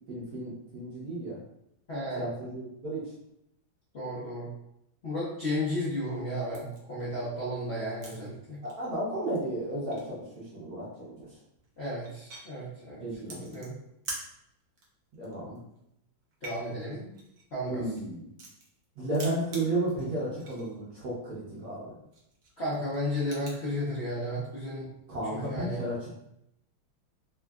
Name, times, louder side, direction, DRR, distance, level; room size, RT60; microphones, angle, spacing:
voice 1, 0.1-1.4 2.2-3.1 8.6-11.3 13.0-13.6 15.2-15.6 17.6-18.3 19.0-21.9 25.1-26.1, right 1 dB, 55° right, -7 dB, 1.3 m, -33 dB
voice 2, 1.9-2.3 3.9-4.5 5.0-8.6 11.8-13.0 13.4-13.8 16.4-17.1 17.5-17.8 22.6-24.9 25.3-25.8, left 1 dB, 60° left, -8 dB, 0.6 m, -33 dB
sound 1, 6.5-6.8 7.3-8.3 8.6-9.0 9.3-9.4 9.6-10.2 11.2-11.3 11.6-12.5 13.2-14.3 14.6-14.8 15.1-15.8 16.2-18.8 19.1-20.8 21.0-21.1 21.5-21.7 22.1-23.6, right 2 dB, 85° right, 0.6 m, -45 dB
3.7 x 2.3 x 2.3 m, 0.79 s
omnidirectional pair, 2.3 m